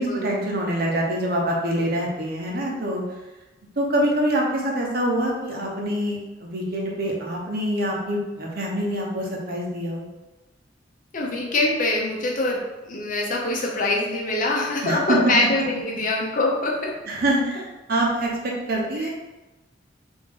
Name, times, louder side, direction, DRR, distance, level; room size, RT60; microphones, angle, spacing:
voice 1, 0.0-3.0 3.8-10.0 14.8-15.2 17.1-19.1, right 1 dB, 55° right, -1 dB, 0.8 m, -25 dB
voice 2, 11.1-17.0 19.0-19.1, left 2 dB, 45° left, -1 dB, 0.7 m, -24 dB
3.5 x 3.0 x 3.7 m, 1.1 s
head